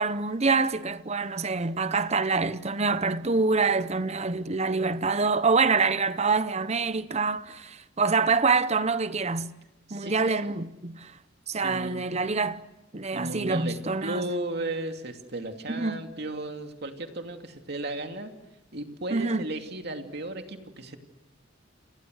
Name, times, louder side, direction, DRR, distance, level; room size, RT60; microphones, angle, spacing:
voice 1, 0.0-9.5 9.9-11.2 11.5-12.6 12.9-14.2 15.7-16.0 19.1-19.5, right 4 dB, 35° right, 0.9 m, -26 dB
voice 2, 9.9-10.4 11.6-12.1 13.1-18.3 18.7-21.0, right 1 dB, 55° right, 2.7 m, -35 dB
30.0 x 29.0 x 6.5 m
head